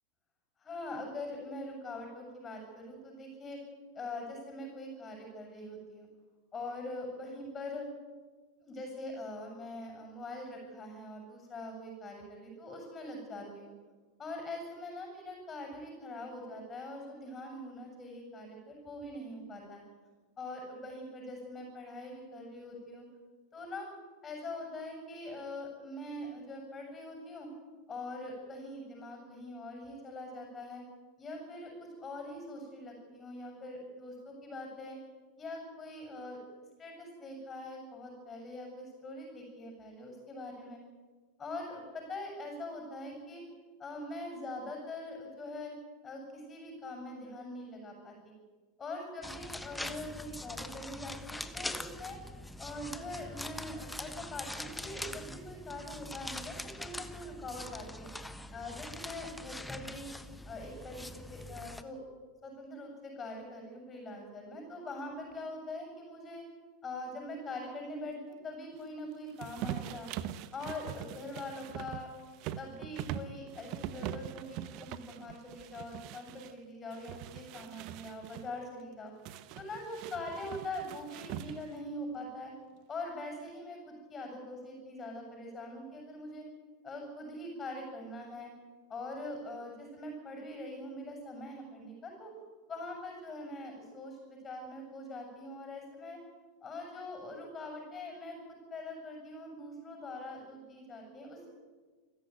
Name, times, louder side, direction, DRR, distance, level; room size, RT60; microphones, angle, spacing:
voice 1, 0.6-3.6 3.9-6.1 6.5-7.9 8.6-13.7 14.2-19.8 20.4-23.1 23.5-23.9 24.2-27.5 27.9-30.8 31.2-35.0 35.4-36.4 36.8-40.8 41.4-43.4 43.8-45.7 46.0-48.3 48.8-52.2 52.6-58.1 58.5-60.1 60.5-62.0 62.4-66.4 66.8-70.1 70.5-72.1 72.6-79.1 79.5-82.5 82.9-86.4 86.8-88.5 88.9-92.3 92.7-96.2 96.6-101.5, left 2 dB, 20° left, 3 dB, 7.9 m, -43 dB
sound 1, 49.2-61.8, left 1 dB, 5° left, 1.3 m, -43 dB
sound 2, 69.4-76.5 76.9-78.5 79.3-81.8, right 12 dB, 45° right, 1.2 m, -42 dB
29.5 x 14.5 x 9.5 m, 1.4 s
figure-of-eight pair, 85°, 0 cm